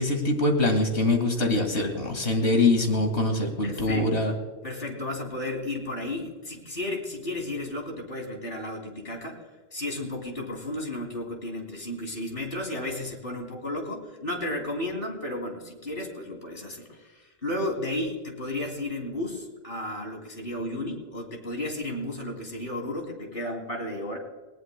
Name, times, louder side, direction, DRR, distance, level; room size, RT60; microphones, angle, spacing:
voice 1, 0.0-4.3, left 2 dB, 90° left, 4 dB, 2.4 m, -24 dB
voice 2, 3.6-4.3 4.6-9.4 9.7-24.2, left 1 dB, 55° left, 1 dB, 3.0 m, -33 dB
19.5 x 18.0 x 2.2 m, 1.4 s
omnidirectional pair, 1.1 m